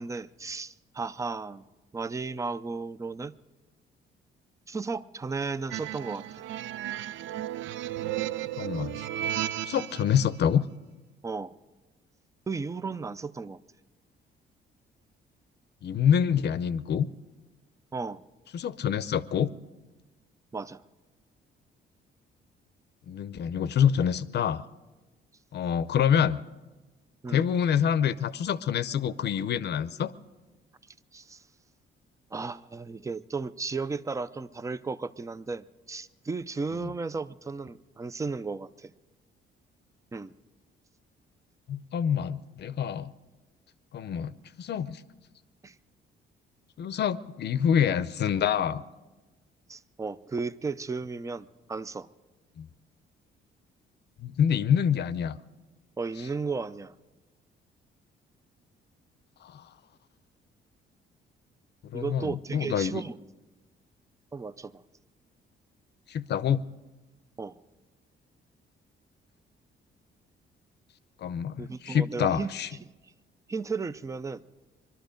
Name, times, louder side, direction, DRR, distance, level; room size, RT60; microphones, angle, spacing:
voice 1, 0.0-1.6 1.9-3.4 4.7-6.4 11.2-11.5 12.5-13.6 17.9-18.2 20.5-20.8 27.2-27.5 31.1-31.4 32.3-38.9 40.1-40.3 45.6-45.7 49.7-52.1 56.0-56.9 61.9-63.2 64.3-64.8 67.4-67.6 71.6-72.5 72.8-72.9 73.5-74.4, right 4 dB, 15° right, 16 dB, 0.5 m, -34 dB
sound 1, 5.7-10.2, right 12 dB, 75° right, 0.4 m, -34 dB
voice 2, 8.6-9.1 9.6-10.7 15.8-17.1 18.5-19.5 23.1-24.6 25.5-26.4 27.3-30.1 36.8-36.9 41.7-43.1 43.9-44.3 44.6-45.0 46.8-48.8 52.6-52.7 54.2-55.4 59.4-59.7 61.8-63.0 66.1-66.7 71.2-72.7, left 8 dB, 60° left, 15 dB, 0.6 m, -26 dB
22.0 x 12.5 x 5.2 m, 1.2 s
cardioid pair, 90°, 20 cm